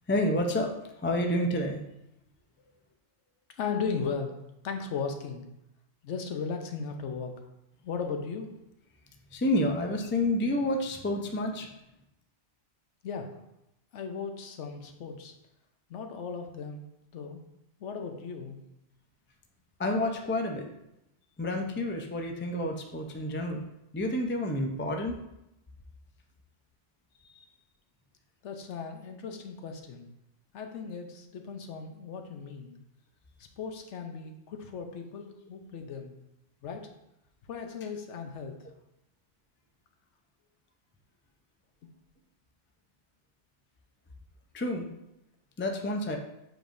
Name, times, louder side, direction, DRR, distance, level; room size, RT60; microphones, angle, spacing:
voice 1, 0.1-0.7 1.0-1.8 9.3-11.7 19.8-20.7 21.4-23.6 23.9-25.2 44.5-44.9 45.6-46.2, left 1 dB, 20° left, 3 dB, 0.3 m, -29 dB
voice 2, 3.6-4.4 4.6-5.4 6.0-7.3 7.8-8.5 13.0-13.3 13.9-15.3 15.9-16.8 17.1-17.4 17.8-18.6 28.4-30.1 30.5-32.8 33.6-36.1 36.6-36.9 37.5-38.5, left 5 dB, 75° left, 4 dB, 1.0 m, -36 dB
7.6 x 5.0 x 2.6 m, 0.85 s
omnidirectional pair, 1.2 m